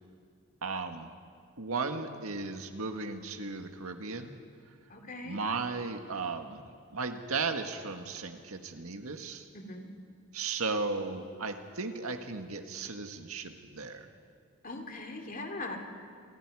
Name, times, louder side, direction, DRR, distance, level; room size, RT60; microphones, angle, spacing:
voice 1, 0.6-1.1 1.6-4.3 5.2-6.6 6.9-9.5 10.3-14.1, right 4 dB, 85° right, 5 dB, 1.7 m, -35 dB
voice 2, 4.9-5.4 9.5-9.9 14.6-15.8, left 2 dB, 40° left, 3 dB, 2.7 m, -40 dB
28.0 x 25.5 x 4.9 m, 2.2 s
head